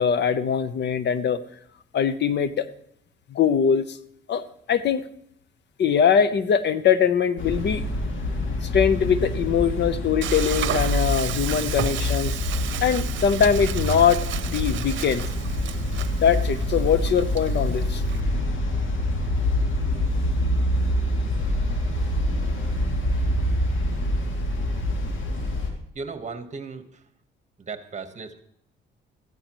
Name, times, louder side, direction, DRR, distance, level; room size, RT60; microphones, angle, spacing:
voice 1, 0.0-1.4 1.9-2.7 3.3-4.0 4.3-5.0 5.8-7.8 8.6-12.3 12.8-14.2 14.5-15.2 16.2-18.0, left 7 dB, 60° left, 14 dB, 0.9 m, -22 dB
sound 1, 7.4-25.7, left 1 dB, 80° left, 2.7 m, -26 dB
Frying (food), 10.2-18.2, right 11 dB, 70° right, 0.8 m, -34 dB
voice 2, 25.9-27.0 27.6-28.4, right 4 dB, 35° right, 9 dB, 1.4 m, -36 dB
15.0 x 13.0 x 3.1 m, 0.71 s
cardioid pair, 90°, 20 cm